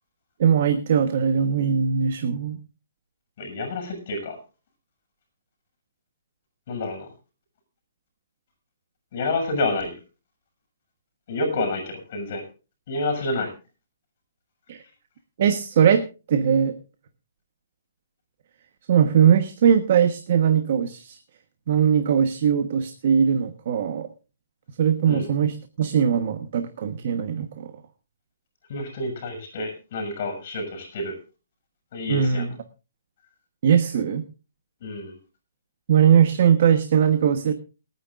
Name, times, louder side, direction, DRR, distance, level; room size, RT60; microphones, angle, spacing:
voice 1, 0.4-2.6 14.7-14.8 15.4-16.7 18.9-21.2 21.7-24.1 24.8-27.7 32.1-32.5 33.6-34.2 35.9-37.5, right 8 dB, 40° right, 9 dB, 1.2 m, -20 dB
voice 2, 3.4-4.4 6.7-7.1 9.1-9.9 11.3-12.4 12.9-13.5 25.1-25.3 28.7-31.2 31.9-32.6 34.8-35.2, left 2 dB, 40° left, 5 dB, 7.2 m, -28 dB
28.5 x 9.7 x 2.5 m, 0.32 s
hypercardioid pair, 170°, 0 cm